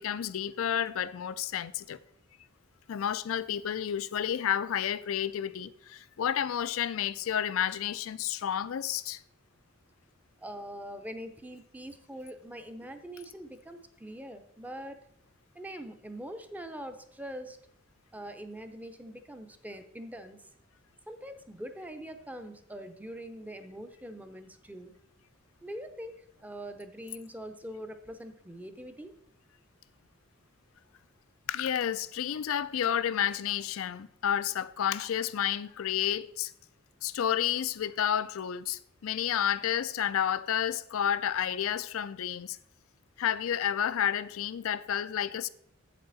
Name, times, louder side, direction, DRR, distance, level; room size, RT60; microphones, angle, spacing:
voice 1, 0.0-2.0 2.9-9.2 31.5-36.5 37.0-42.6 43.2-45.5, left 9 dB, 75° left, 0.4 m, -30 dB
voice 2, 10.4-15.0 15.5-17.6 18.1-20.5 21.1-24.9 25.6-29.1, equal, 10° right, 0.6 m, -43 dB
7.8 x 7.5 x 4.0 m
head